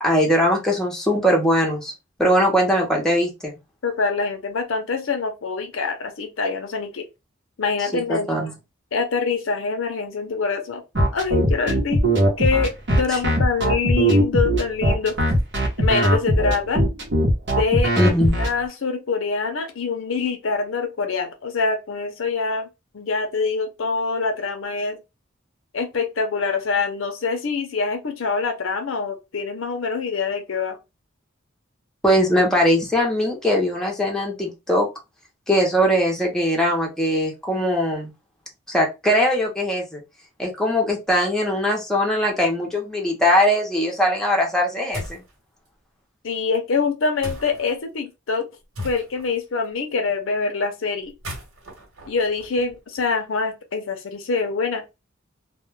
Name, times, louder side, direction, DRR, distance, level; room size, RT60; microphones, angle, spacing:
voice 1, 0.0-1.9 2.2-3.5 8.1-8.5 18.0-18.4 32.0-34.9 35.5-38.1 38.7-40.0 40.4-45.2, equal, 5° left, 0.6 m, -20 dB
voice 2, 3.8-7.1 7.6-8.5 8.9-10.8 11.1-15.2 15.8-16.8 17.5-17.9 18.4-22.7 22.9-25.0 25.7-30.8 46.2-48.5 48.8-51.1 52.1-54.8, left 4 dB, 75° left, 0.6 m, -25 dB
sound 1, 10.9-18.5, right 1 dB, 60° right, 0.8 m, -19 dB
sound 2, 44.9-45.3 47.2-47.7 48.7-49.4 51.1-53.0, left 1 dB, 85° right, 1.2 m, -36 dB
2.2 x 2.2 x 3.1 m
head